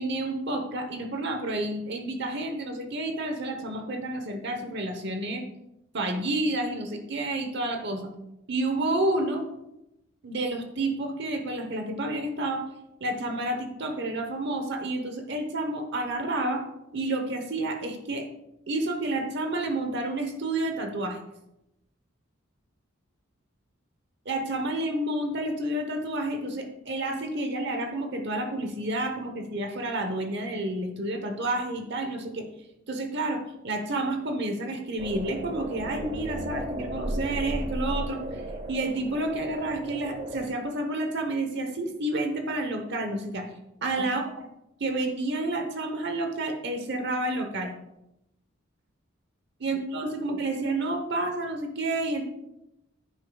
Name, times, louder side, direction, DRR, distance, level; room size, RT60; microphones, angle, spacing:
voice 1, 0.0-5.4 5.9-8.1 8.5-9.4 10.2-12.6 13.0-16.6 16.9-18.2 18.7-21.2 24.2-32.5 32.9-38.4 38.7-43.5 43.8-44.5 44.8-47.7 49.6-52.2, right 2 dB, 55° right, 5 dB, 1.0 m, -30 dB
sound 1, 35.0-40.5, right 1 dB, 35° right, 0.8 m, -35 dB
10.0 x 9.7 x 2.3 m, 0.88 s
head